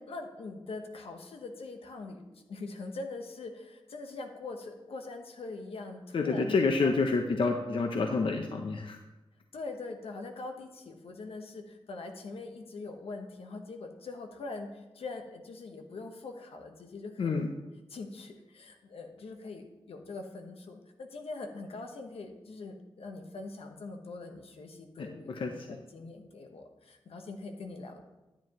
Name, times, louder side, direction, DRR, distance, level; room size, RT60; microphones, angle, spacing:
voice 1, 0.0-2.2 2.5-7.0 9.5-17.5 17.9-28.0, left 3 dB, 90° left, 4 dB, 1.1 m, -43 dB
voice 2, 6.1-9.0 17.2-17.5 25.0-25.8, left 4 dB, 65° left, 4 dB, 0.7 m, -29 dB
10.0 x 9.4 x 3.0 m, 1.1 s
wide cardioid pair, 140°, 10 cm